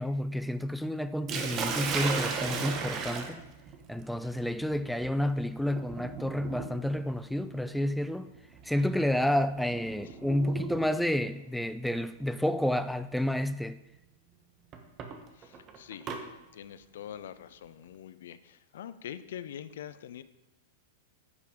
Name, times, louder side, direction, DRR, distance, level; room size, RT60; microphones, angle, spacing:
voice 1, 0.0-3.4 3.9-8.3 8.6-13.8, left 1 dB, ahead, 0.3 m, -30 dB
Sink (filling or washing), 1.3-11.2 12.3-12.7 13.2-13.3 14.7-16.2, right 5 dB, 30° right, 1.1 m, -37 dB
voice 2, 15.3-16.1 16.5-20.2, left 10 dB, 65° left, 0.5 m, -44 dB
9.9 x 5.3 x 5.1 m
figure-of-eight pair, 95°, 0 cm